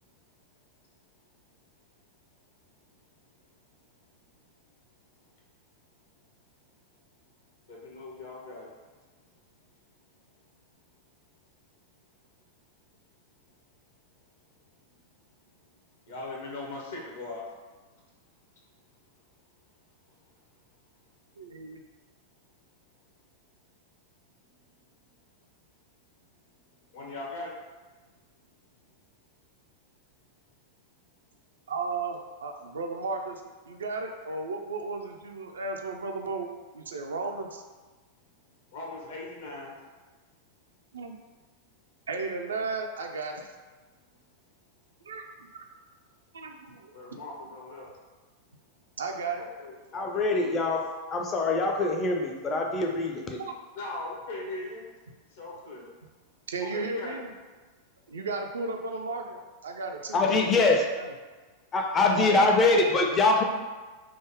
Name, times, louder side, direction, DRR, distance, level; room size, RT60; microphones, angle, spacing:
voice 1, 7.6-8.7 16.1-17.4 26.9-27.6 38.7-39.8 46.9-47.9 49.4-50.6 53.7-54.9 55.3-55.9 56.7-57.1 57.6-57.7, left 2 dB, 60° left, -2 dB, 0.8 m, -40 dB
voice 2, 21.4-21.8 31.7-33.4 33.7-37.6 40.9-41.1 42.1-43.5 45.1-45.3 45.5-45.6 46.3-47.2 49.0-49.5 53.4-53.5 56.5-57.3 58.1-61.1 62.1-62.4, right 3 dB, 70° right, 4 dB, 0.3 m, -34 dB
voice 3, 49.9-50.8 51.1-53.4 60.1-60.8 61.7-63.4, left 3 dB, 25° left, 2 dB, 0.5 m, -23 dB
3.4 x 2.0 x 3.5 m, 1.3 s
figure-of-eight pair, 90°, 0 cm